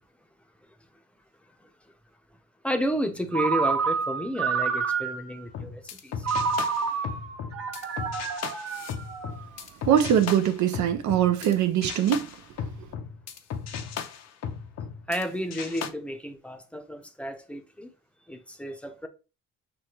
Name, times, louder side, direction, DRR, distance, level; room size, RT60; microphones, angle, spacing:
voice 1, 2.6-6.3 15.1-17.9 18.3-19.1, equal, 5° left, 0.6 m, -32 dB
Ringtone, 3.3-5.4 6.2-9.6, right 5 dB, 55° right, 1.0 m, -29 dB
sound 1, 5.5-11.5 11.8-15.2 15.5-15.9, left 7 dB, 60° left, 0.6 m, -36 dB
voice 2, 9.9-12.3, right 10 dB, 70° right, 0.6 m, -22 dB
6.4 x 2.2 x 3.0 m
cardioid pair, 90°, 30 cm